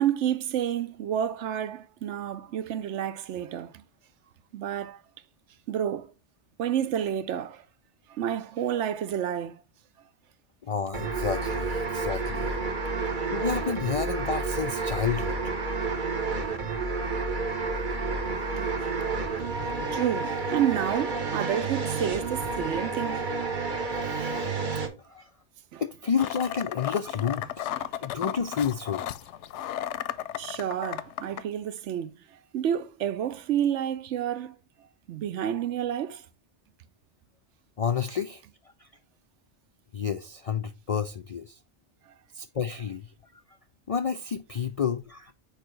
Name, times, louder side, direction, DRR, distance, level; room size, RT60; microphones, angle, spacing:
voice 1, 0.0-3.8 4.5-5.0 5.7-6.1 6.6-7.7 8.1-9.6 18.6-18.7 19.0-19.1 19.9-23.3 25.7-25.8 30.4-34.6 35.1-36.3, right 10 dB, 85° right, 1.0 m, -30 dB
voice 2, 10.6-12.5 13.3-15.4 24.0-24.4 25.1-25.3 25.8-27.5 28.0-29.0 37.8-38.4 38.8-38.9 39.9-41.6 42.3-43.1 43.9-45.3, left 6 dB, 65° left, 0.3 m, -30 dB
sound 1, 10.9-24.9, right 3 dB, 45° right, 1.1 m, -30 dB
sound 2, 26.2-31.4, left 11 dB, 90° left, 0.9 m, -34 dB
6.5 x 4.8 x 3.2 m
omnidirectional pair, 1.2 m